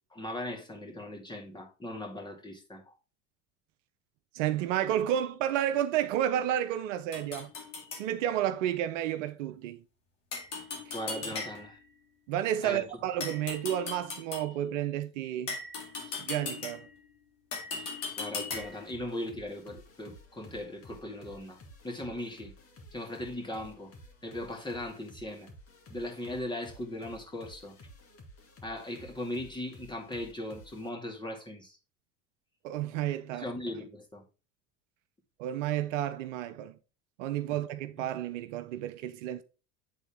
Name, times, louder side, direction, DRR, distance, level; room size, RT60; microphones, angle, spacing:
voice 1, 0.1-2.9 10.9-11.8 12.6-12.9 16.0-16.1 17.8-17.9 18.2-21.6 21.8-22.5 22.9-23.9 24.2-25.5 25.9-27.8 28.6-31.8 33.3-34.2, left 1 dB, 10° left, 2.2 m, -38 dB
voice 2, 4.3-7.5 7.9-9.8 10.9-11.0 12.3-15.6 16.2-16.9 32.6-33.5 35.4-36.8 37.2-39.4, right 11 dB, 70° right, 0.7 m, -31 dB
sound 1, 7.1-8.1 10.3-11.8 13.2-14.6 15.5-17.0 17.5-18.9, left 4 dB, 80° left, 2.3 m, -38 dB
sound 2, 18.5-30.9, equal, 35° left, 2.0 m, -53 dB
9.1 x 3.9 x 3.6 m
hypercardioid pair, 80°, 38 cm